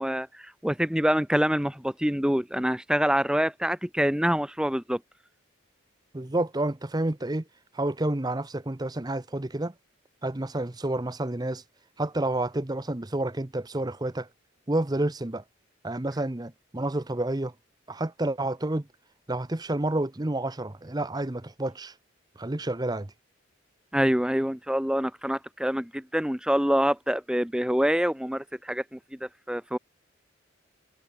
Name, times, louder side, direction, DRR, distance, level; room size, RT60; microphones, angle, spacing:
voice 1, 0.0-5.0 23.9-29.8, equal, 5° right, 1.1 m, -26 dB
voice 2, 6.1-7.4 7.7-9.7 10.2-11.6 12.0-14.3 14.7-15.4 15.8-17.5 17.9-18.9 19.3-21.9 22.4-23.1, right 1 dB, 20° right, 0.7 m, -29 dB
head